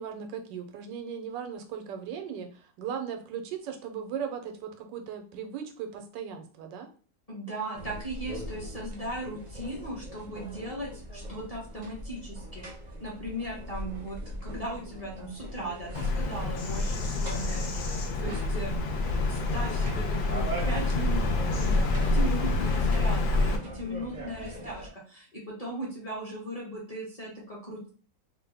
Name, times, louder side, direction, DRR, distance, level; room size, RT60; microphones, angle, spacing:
voice 1, 0.0-6.9, right 7 dB, 85° right, 6 dB, 1.3 m, -37 dB
voice 2, 7.3-12.6 13.0-18.7 19.3-27.9, right 1 dB, 30° left, -5 dB, 0.8 m, -38 dB
sound 1, 7.7-24.9, equal, 40° right, 0.6 m, -40 dB
Bird vocalization bird call bird song, 15.9-23.6, left 2 dB, 80° left, 1.3 m, -27 dB
3.3 x 2.1 x 3.3 m, 0.40 s
omnidirectional pair, 1.9 m